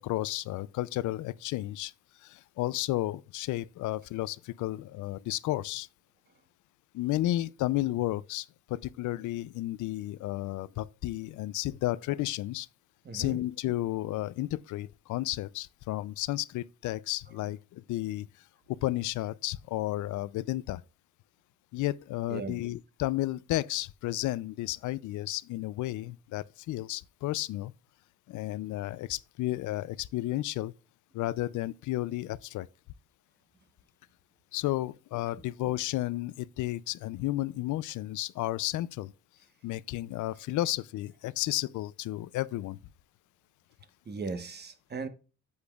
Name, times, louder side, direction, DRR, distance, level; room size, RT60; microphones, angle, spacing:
voice 1, 0.0-5.9 6.9-12.7 13.1-18.3 18.7-20.8 21.7-27.7 28.3-30.7 31.1-32.7 34.5-39.1 39.6-42.8, left 16 dB, 75° left, 0.5 m, -32 dB
voice 2, 13.0-13.4 22.3-22.6 44.0-45.1, right 4 dB, 35° right, 1.1 m, -37 dB
8.4 x 8.0 x 2.3 m
cardioid pair, 90°, 30 cm